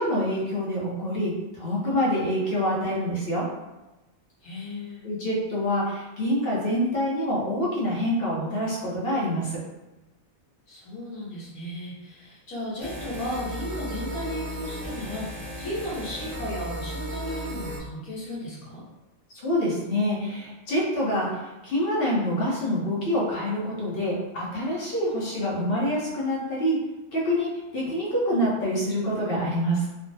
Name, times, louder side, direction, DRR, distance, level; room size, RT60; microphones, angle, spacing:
voice 1, 0.0-3.5 5.0-9.6 19.3-26.8 27.1-29.9, equal, 50° left, -4 dB, 0.8 m, -26 dB
voice 2, 4.4-5.0 10.7-18.8, left 1 dB, 80° left, -7 dB, 1.4 m, -35 dB
sound 1, 12.8-17.8, right 1 dB, 80° right, 0.3 m, -35 dB
3.3 x 2.0 x 2.6 m, 1.0 s
omnidirectional pair, 1.5 m